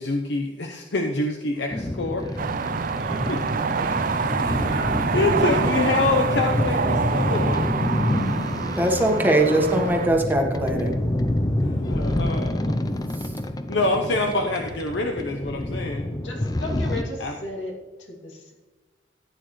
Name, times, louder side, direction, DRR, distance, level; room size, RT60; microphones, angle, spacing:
voice 1, 0.0-2.3 3.3-3.4 4.4-4.8 5.1-7.7 11.6-12.8 13.7-16.1 17.2-17.4, left 2 dB, 70° left, 3 dB, 0.8 m, -26 dB
sound 1, 1.5-6.5, right 3 dB, 70° right, 1.5 m, -40 dB
sound 2, 1.7-17.0, left 1 dB, 20° left, 0.5 m, -27 dB
sound 3, 2.4-10.1, right 5 dB, 50° right, 0.4 m, -26 dB
voice 2, 8.6-10.9, right 1 dB, 10° right, 1 dB, 1.4 m, -21 dB
voice 3, 16.2-17.7 18.0-18.5, left 2 dB, 90° left, -1 dB, 2.6 m, -35 dB
14.5 x 9.1 x 3.2 m, 1.3 s
head